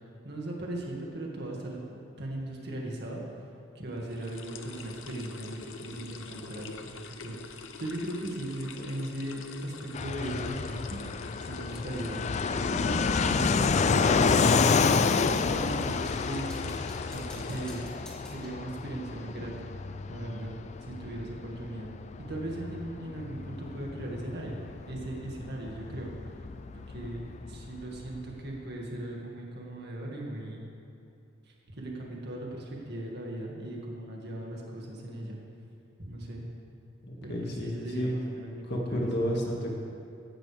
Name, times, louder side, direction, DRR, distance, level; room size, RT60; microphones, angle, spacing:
voice 1, 0.2-1.8 2.2-3.2 3.8-11.0 11.4-12.3 12.7-16.5 17.0-17.9 18.3-19.7 20.1-20.5 20.8-21.9 22.2-24.6 24.9-26.1 26.9-30.7 31.7-35.4 36.0-36.5 37.2-39.1, right 1 dB, 55° right, -2 dB, 2.1 m, -38 dB
sound 1, 4.0-17.8, left 4 dB, 75° left, 0.8 m, -45 dB
Fixed-wing aircraft airplane, 9.9-28.3, left 5 dB, 35° left, 0.3 m, -29 dB
sound 2, 16.0-18.6, equal, 5° left, 2.1 m, -51 dB
voice 2, 37.0-38.1 38.7-39.8, equal, 55° left, -1 dB, 2.0 m, -31 dB
16.5 x 11.5 x 3.4 m, 2.5 s
head